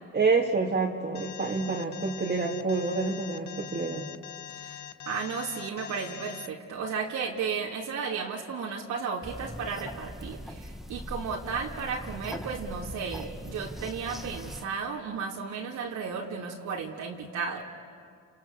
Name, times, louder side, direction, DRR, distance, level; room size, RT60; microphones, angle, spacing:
voice 1, 0.1-4.1, right 4 dB, 35° right, -3 dB, 2.4 m, -28 dB
Alarm, 1.1-6.5, left 12 dB, 85° left, 1.0 m, -43 dB
voice 2, 4.5-17.6, right 5 dB, 80° right, -2 dB, 3.0 m, -34 dB
sound 1, 9.2-14.6, equal, ahead, 1.5 m, -41 dB
29.5 x 29.5 x 6.8 m, 2.1 s
cardioid pair, 90°, 30 cm